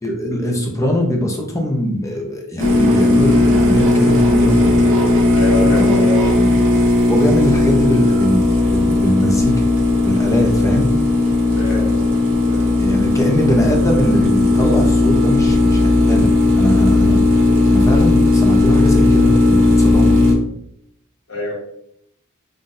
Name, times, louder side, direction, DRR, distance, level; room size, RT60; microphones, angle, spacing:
voice 1, 0.0-4.9 5.2-6.0 6.4-6.7 7.1-9.7 10.0-11.0 12.8-20.2, equal, 15° left, 1 dB, 0.7 m, -21 dB
sound 1, 2.6-20.3, left 2 dB, 60° right, 0.9 m, -15 dB
voice 2, 5.3-6.2 11.6-12.1 12.5-12.7 21.3-21.5, left 2 dB, 65° left, -2 dB, 1.3 m, -25 dB
5.7 x 2.5 x 2.6 m, 0.73 s
head